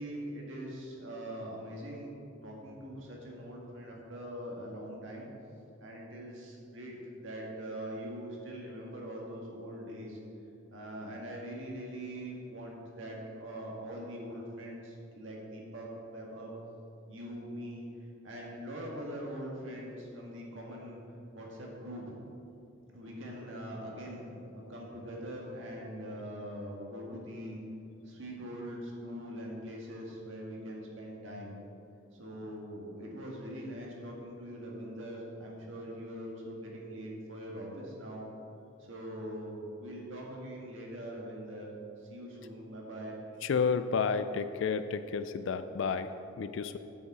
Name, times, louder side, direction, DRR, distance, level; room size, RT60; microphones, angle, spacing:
voice 1, 0.0-2.1 2.4-5.3 5.8-10.2 10.7-16.5 17.1-17.9 18.2-21.0 21.3-22.2 22.9-27.6 28.0-31.5 32.1-38.3 38.8-41.7 42.0-43.2, equal, 75° right, -2 dB, 1.8 m, -42 dB
voice 2, 43.4-46.8, left 5 dB, 70° left, 11 dB, 0.4 m, -31 dB
8.2 x 7.1 x 4.9 m, 2.7 s
head